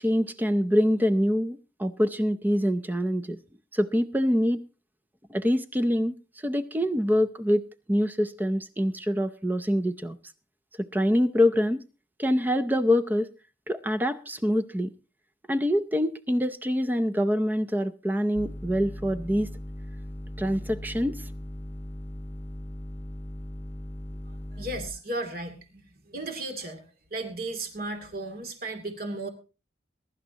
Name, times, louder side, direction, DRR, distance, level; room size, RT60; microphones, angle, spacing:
voice 1, 0.0-3.4 3.7-4.6 5.3-6.1 6.4-7.6 7.9-10.2 10.8-11.8 12.2-13.3 13.7-14.9 15.5-19.5 20.4-21.2, equal, 10° right, 10 dB, 0.5 m, -25 dB
sound 1, 18.4-24.9, left 1 dB, 10° left, 1.2 m, -38 dB
voice 2, 24.5-26.8 27.1-29.3, right 2 dB, 50° right, 5 dB, 2.6 m, -35 dB
21.5 x 11.0 x 2.8 m, 0.32 s
head